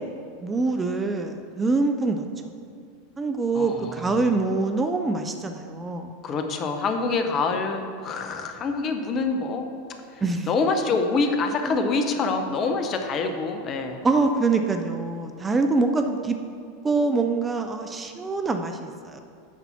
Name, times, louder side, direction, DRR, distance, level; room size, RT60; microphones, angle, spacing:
voice 1, 0.4-2.3 3.2-6.1 10.2-10.5 11.7-11.8 14.0-16.4 16.8-19.2, right 3 dB, 15° right, 6 dB, 0.5 m, -24 dB
voice 2, 3.5-4.2 6.2-9.7 10.1-14.0, left 4 dB, 35° left, 5 dB, 0.8 m, -26 dB
9.5 x 4.1 x 5.8 m, 2.3 s
figure-of-eight pair, 85°, 0 cm